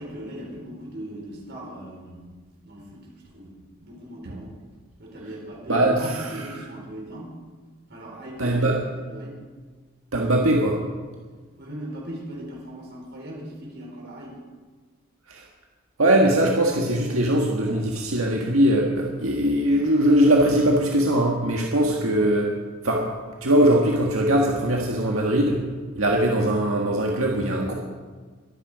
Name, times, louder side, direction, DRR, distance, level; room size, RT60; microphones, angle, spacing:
voice 1, 0.0-2.2 2.6-4.5 5.0-7.4 7.9-9.4 11.6-14.4, right 1 dB, 55° right, -2 dB, 4.7 m, -39 dB
voice 2, 5.7-6.3 8.4-8.8 10.1-10.8 15.3-15.4 16.0-22.5 22.8-23.0 23.4-25.6 26.0-27.7, right 1 dB, 90° right, 0 dB, 1.6 m, -21 dB
23.5 x 9.3 x 5.1 m, 1.4 s
head